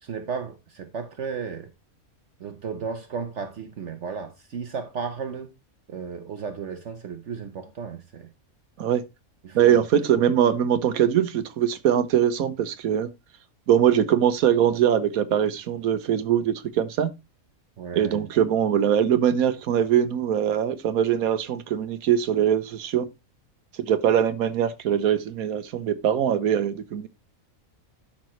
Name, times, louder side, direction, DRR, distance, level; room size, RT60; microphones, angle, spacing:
voice 1, 0.0-1.7 2.4-5.5 5.9-8.3 9.4-9.8 10.1-10.2 17.8-18.3, right 6 dB, 60° right, 1.2 m, -34 dB
voice 2, 9.5-13.1 13.7-17.1 17.9-23.0 23.8-27.1, right 9 dB, 85° right, 1.3 m, -22 dB
12.0 x 5.9 x 3.1 m
omnidirectional pair, 1.5 m